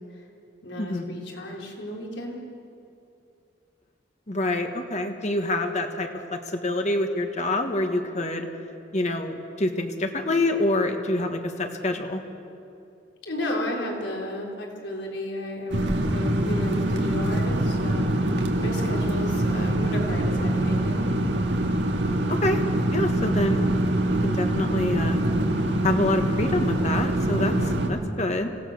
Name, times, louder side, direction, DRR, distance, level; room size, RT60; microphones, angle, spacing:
voice 1, 0.6-2.4 13.2-21.0 27.7-28.0, left 1 dB, 80° left, -1 dB, 3.9 m, -33 dB
voice 2, 4.3-8.5 8.9-12.2 22.3-22.6 22.9-23.6 24.2-25.2 25.8-27.5 27.9-28.5, left 1 dB, 40° left, 5 dB, 1.6 m, -26 dB
sound 1, 15.7-27.9, right 1 dB, 75° right, 2.1 m, -24 dB
26.0 x 17.5 x 6.6 m, 2.5 s
head